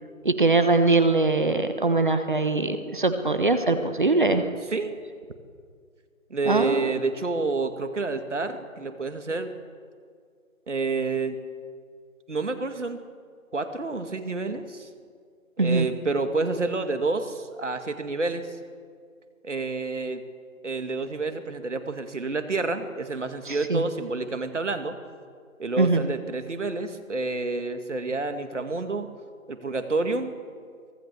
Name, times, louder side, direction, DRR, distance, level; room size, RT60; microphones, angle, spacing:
voice 1, 0.2-4.4 6.4-6.9 15.6-15.9 23.5-23.8 25.8-26.1, right 3 dB, 35° right, 8 dB, 1.3 m, -22 dB
voice 2, 6.3-9.5 10.7-11.4 12.3-13.0 13.5-14.9 15.6-18.5 19.4-20.2 20.6-25.0 25.6-29.1 29.5-30.3, right 3 dB, 55° right, 8 dB, 2.3 m, -29 dB
24.5 x 18.0 x 7.0 m, 2.1 s
figure-of-eight pair, 170°, 42 cm